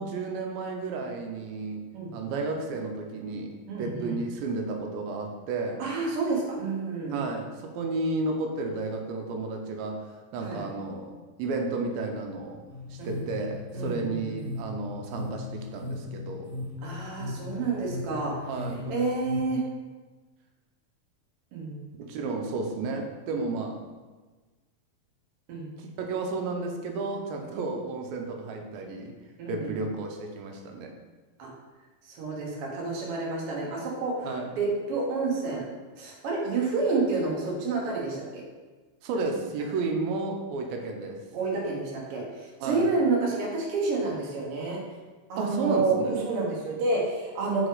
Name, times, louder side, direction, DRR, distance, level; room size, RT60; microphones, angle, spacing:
voice 1, 0.0-1.9 2.1-5.8 7.1-10.0 10.3-11.1 11.4-12.6 12.9-16.5 18.5-18.9 22.0-23.8 25.8-29.1 29.5-30.9 34.2-34.5 39.0-41.2 42.6-42.9 45.4-46.2, right 3 dB, 85° right, 3 dB, 2.5 m, -32 dB
voice 2, 1.9-2.3 3.7-4.2 5.8-7.3 10.4-10.6 13.0-13.2 13.7-14.5 16.8-18.3 18.9-19.6 21.5-21.8 25.5-25.7 29.4-29.8 31.4-31.5 32.2-34.3 34.6-35.6 36.0-38.4 41.3-42.2 42.6-44.8 45.3-47.7, right 3 dB, 60° right, -3 dB, 1.5 m, -29 dB
sound 1, 12.7-19.4, left 3 dB, 20° left, 0.8 m, -38 dB
5.0 x 4.9 x 3.9 m, 1.3 s
omnidirectional pair, 4.1 m